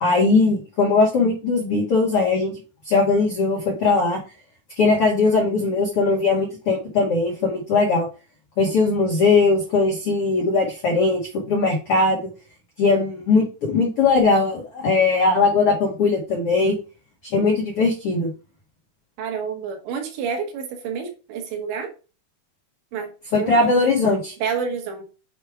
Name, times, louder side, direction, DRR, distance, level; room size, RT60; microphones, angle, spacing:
voice 1, 0.0-2.5 2.8-4.2 4.8-8.1 8.6-12.3 12.8-16.7 17.2-18.3 23.3-24.3, left 3 dB, 90° left, -1 dB, 1.2 m, -19 dB
voice 2, 19.2-21.9 22.9-23.6 24.4-25.0, right 6 dB, 90° right, 3 dB, 3.6 m, -29 dB
7.6 x 4.7 x 3.5 m, 0.34 s
omnidirectional pair, 5.0 m